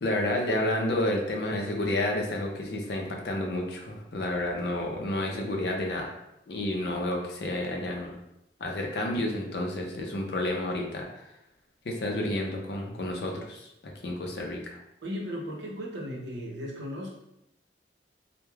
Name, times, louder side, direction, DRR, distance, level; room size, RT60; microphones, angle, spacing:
voice 1, 0.0-6.1 6.5-8.2 8.6-11.3 11.8-14.8, left 1 dB, 60° left, 1 dB, 0.4 m, -30 dB
voice 2, 15.0-17.1, equal, 75° right, -2 dB, 0.7 m, -36 dB
2.2 x 2.1 x 3.1 m, 0.84 s
head